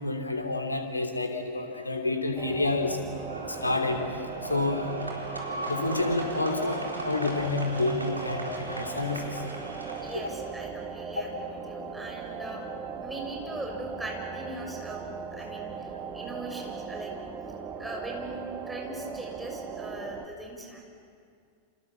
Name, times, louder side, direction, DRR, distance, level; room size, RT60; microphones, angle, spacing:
voice 1, 0.0-3.0 3.5-4.0 4.5-4.9 5.7-9.4 10.1-10.2, left 2 dB, 80° left, 5 dB, 3.0 m, -29 dB
sound 1, 2.4-20.3, right 5 dB, 30° right, 2.1 m, -38 dB
sound 2, 3.1-10.5, right 1 dB, 80° right, 3.8 m, -38 dB
voice 2, 10.0-12.6 13.0-15.0 15.3-17.1 17.8-20.8, right 1 dB, 5° right, 0 dB, 6.3 m, -40 dB
29.5 x 27.5 x 7.4 m, 2.2 s
figure-of-eight pair, 90°, 0 cm